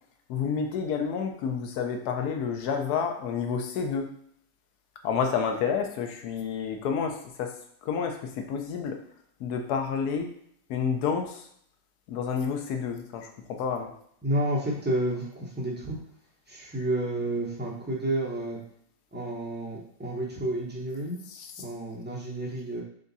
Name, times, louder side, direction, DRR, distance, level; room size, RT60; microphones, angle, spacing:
voice 1, 0.3-4.1 5.0-9.0 9.4-10.3 10.7-11.5 12.1-13.9 21.3-21.6, left 6 dB, 65° left, 4 dB, 1.1 m, -30 dB
voice 2, 14.2-16.0 16.5-18.6 19.1-21.2 21.6-22.8, right 1 dB, 10° right, -4 dB, 0.6 m, -30 dB
3.8 x 3.5 x 4.0 m, 0.67 s
omnidirectional pair, 1.9 m